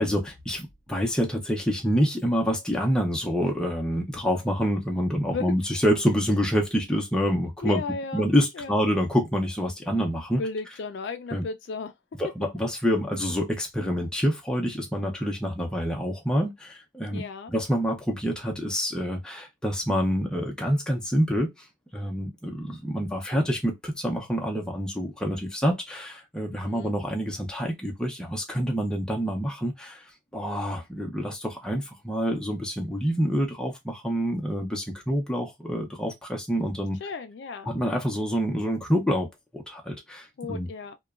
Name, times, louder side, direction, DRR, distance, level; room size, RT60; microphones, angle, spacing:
voice 1, 0.0-7.8 8.1-10.4 11.3-11.4 12.2-17.2 17.5-21.5 21.9-30.0 30.3-37.0 37.7-39.3 39.5-40.7, equal, 5° left, 0.6 m, -27 dB
voice 2, 7.6-8.3 8.5-8.8 10.4-11.9 17.1-17.5 26.5-26.9 37.0-37.7 40.4-41.0, left 4 dB, 55° left, 0.3 m, -34 dB
2.9 x 2.2 x 2.3 m
head